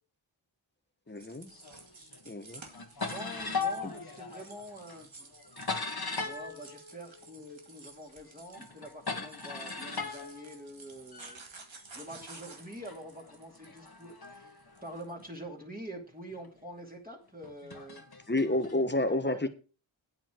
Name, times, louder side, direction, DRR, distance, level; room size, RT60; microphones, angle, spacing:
voice 1, 1.1-1.5 2.2-2.6 3.8-3.9 18.3-19.5, left 2 dB, 20° left, 11 dB, 1.3 m, -30 dB
sound 1, 1.2-15.3, right 3 dB, 75° right, 2.2 m, -53 dB
sound 2, 1.5-2.2 2.5-7.8 8.1-11.4 12.1-15.6 16.3-16.5 17.4-18.8, left 4 dB, 50° left, 1.7 m, -39 dB
voice 2, 3.1-5.3 6.2-11.4 11.9-18.0 19.2-19.5, right 1 dB, 20° right, -1 dB, 2.6 m, -46 dB
10.5 x 8.8 x 4.6 m, 0.35 s
wide cardioid pair, 50°, 47 cm